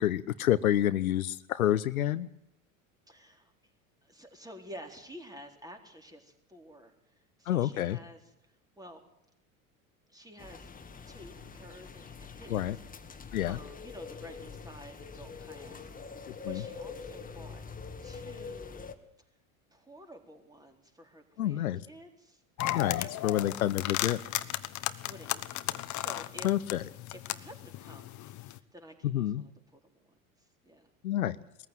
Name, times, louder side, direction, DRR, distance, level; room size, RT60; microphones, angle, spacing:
voice 1, 0.0-2.3 7.5-8.0 12.5-12.8 13.3-13.6 16.4-16.6 21.4-21.8 22.7-24.2 26.4-26.8 29.0-29.4 31.0-31.4, left 12 dB, 80° left, 15 dB, 0.9 m, -28 dB
voice 2, 3.1-3.5 4.0-6.9 7.4-8.2 8.8-9.0 10.1-10.7 11.1-12.7 13.5-17.6 18.0-18.9 19.7-22.4 23.0-23.5 25.1-26.5 27.2-29.9 30.6-30.9, equal, 10° right, 3 dB, 4.0 m, -51 dB
sound 1, 10.4-18.9, left 5 dB, 20° left, 2.0 m, -44 dB
sound 2, 22.6-28.6, left 14 dB, 45° left, 1.2 m, -35 dB
21.0 x 14.5 x 9.3 m, 0.83 s
hypercardioid pair, 85°, 42 cm